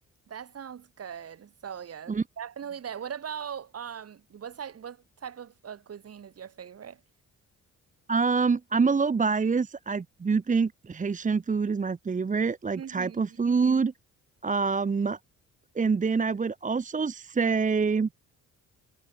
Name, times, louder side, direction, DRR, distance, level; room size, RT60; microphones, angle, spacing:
voice 1, 0.3-7.0 12.8-13.5, right 8 dB, 50° right, 4.4 m, -40 dB
voice 2, 8.1-13.9 14.4-15.2 15.7-18.1, right 5 dB, 25° right, 1.1 m, -26 dB
cardioid pair, 90°, 30 cm